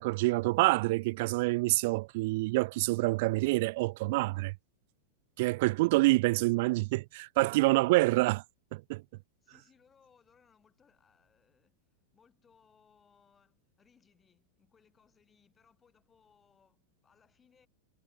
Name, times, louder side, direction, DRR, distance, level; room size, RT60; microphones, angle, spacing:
voice 1, 0.0-4.5 5.4-8.4 8.7-9.0, right 22 dB, 50° right, 0.4 m, -27 dB
voice 2, 7.5-7.9 9.4-17.7, left 6 dB, 20° left, 7.8 m, -67 dB
figure-of-eight pair, 90°, 0 cm